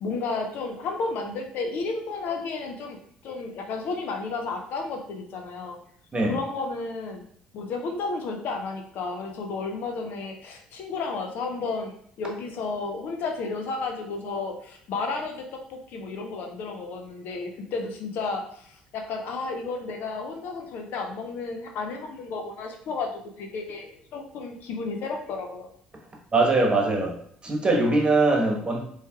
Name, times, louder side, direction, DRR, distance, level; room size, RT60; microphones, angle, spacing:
voice 1, 0.0-5.8 6.2-7.2 7.5-25.7, left 3 dB, 65° left, 4 dB, 0.6 m, -32 dB
voice 2, 26.3-27.1 27.4-28.8, right 2 dB, 30° right, 0 dB, 1.2 m, -22 dB
4.2 x 3.2 x 2.4 m, 0.64 s
hypercardioid pair, 60°, 4 cm